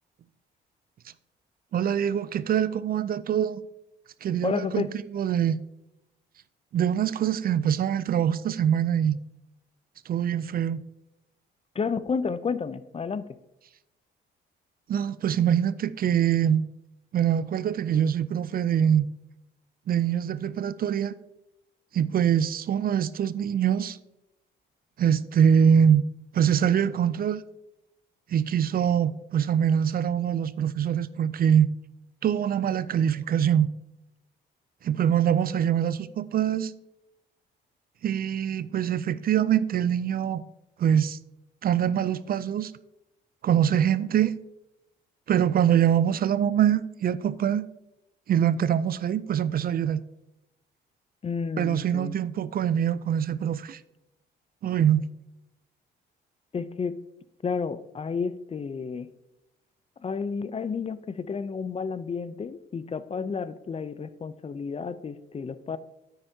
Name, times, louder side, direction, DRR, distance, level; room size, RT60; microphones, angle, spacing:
voice 1, 1.7-3.6 4.2-4.9 5.1-5.6 6.7-9.2 10.1-10.8 14.9-16.6 17.1-19.1 19.9-21.1 21.9-24.0 25.0-26.0 26.3-27.4 28.3-31.7 32.2-33.7 34.8-36.7 38.0-40.4 40.8-41.2 41.6-42.7 43.4-44.3 45.3-47.7 48.3-50.0 51.6-53.8 54.6-55.1, right 9 dB, 50° right, 0.4 m, -24 dB
voice 2, 4.4-4.9 11.7-13.3 51.2-52.2 56.5-57.0 57.4-59.1 60.0-65.8, left 5 dB, 30° left, 0.5 m, -31 dB
9.5 x 8.8 x 2.7 m
cardioid pair, 90°, 20 cm